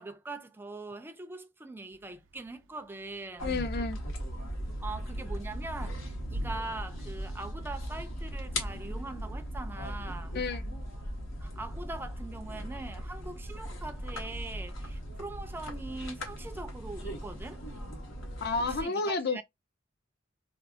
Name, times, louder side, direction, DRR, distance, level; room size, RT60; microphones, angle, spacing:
voice 1, 0.0-3.6 4.8-10.3 11.4-17.6 18.7-19.4, right 2 dB, 10° right, 0.4 m, -42 dB
Thunder / Rain, 1.9-10.2, equal, 80° right, 0.5 m, -46 dB
sound 1, 3.4-18.8, equal, 85° left, 1.2 m, -38 dB
voice 2, 3.4-4.0 10.3-10.7 18.4-19.4, left 3 dB, 55° left, 0.5 m, -31 dB
4.3 x 2.0 x 2.5 m
head